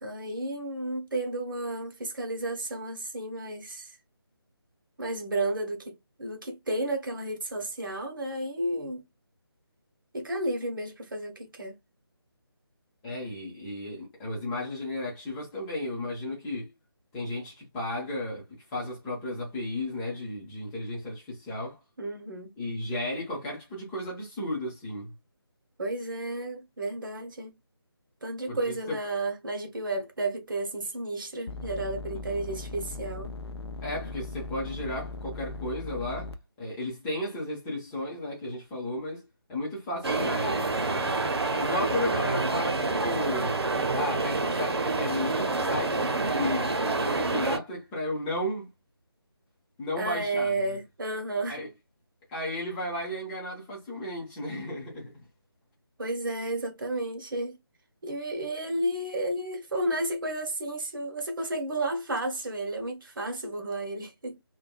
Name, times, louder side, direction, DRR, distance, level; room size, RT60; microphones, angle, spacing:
voice 1, 0.0-4.0 5.0-9.0 10.1-11.8 22.0-22.5 25.8-27.5 28.2-33.3 50.0-51.6 56.0-57.6 58.0-64.4, right 2 dB, 55° right, 1.0 m, -32 dB
voice 2, 13.0-16.7 17.1-21.8 22.6-25.1 28.5-29.0 33.8-39.2 39.5-41.3 41.6-48.7 49.8-50.5 51.5-51.7 52.3-55.2, left 1 dB, 10° left, 0.7 m, -34 dB
sound 1, 31.5-36.3, left 3 dB, 85° left, 0.5 m, -38 dB
sound 2, 40.0-47.6, right 3 dB, 80° right, 0.8 m, -28 dB
3.4 x 2.2 x 2.2 m
figure-of-eight pair, 160°, 13 cm